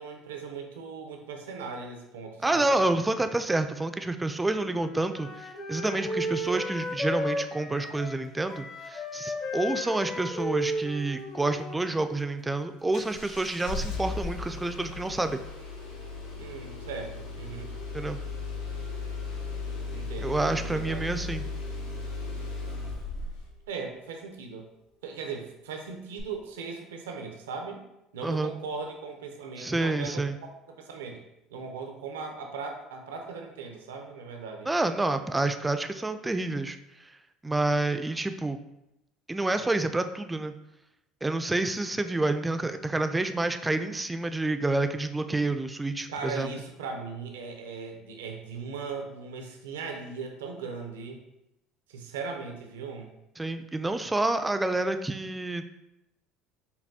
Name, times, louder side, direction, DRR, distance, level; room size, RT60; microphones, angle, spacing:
voice 1, 0.0-2.9 16.4-17.7 19.9-21.2 23.7-24.7 25.0-27.8 28.1-30.2 30.8-31.2 31.5-34.7 46.1-51.2 51.9-53.1, right 5 dB, 85° right, 3 dB, 0.5 m, -38 dB
voice 2, 2.4-15.4 17.9-18.2 20.2-21.5 28.2-28.5 29.6-30.4 34.7-36.8 37.4-38.6 39.3-40.5 41.2-46.5 53.4-55.7, right 2 dB, 15° right, 9 dB, 0.3 m, -28 dB
Wind instrument woodwind instrument, 4.6-12.4, equal, 40° left, 0.7 m, -34 dB
Engine starting, 12.9-23.5 26.2-26.3, left 3 dB, 85° left, 0.7 m, -36 dB
5.3 x 2.3 x 2.7 m, 0.88 s
hypercardioid pair, 75°, 0 cm